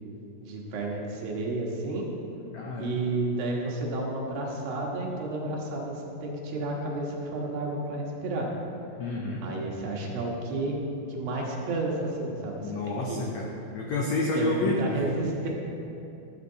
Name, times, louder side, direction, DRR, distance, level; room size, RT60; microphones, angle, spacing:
voice 1, 0.4-2.1 2.8-8.5 9.4-10.8 11.1-13.2 14.3-15.5, right 2 dB, 70° right, -2 dB, 3.2 m, -31 dB
voice 2, 2.5-3.0 9.0-9.4 12.6-13.5 13.7-15.0, left 2 dB, 80° left, -1 dB, 1.6 m, -29 dB
12.0 x 11.5 x 4.0 m, 2.8 s
omnidirectional pair, 4.5 m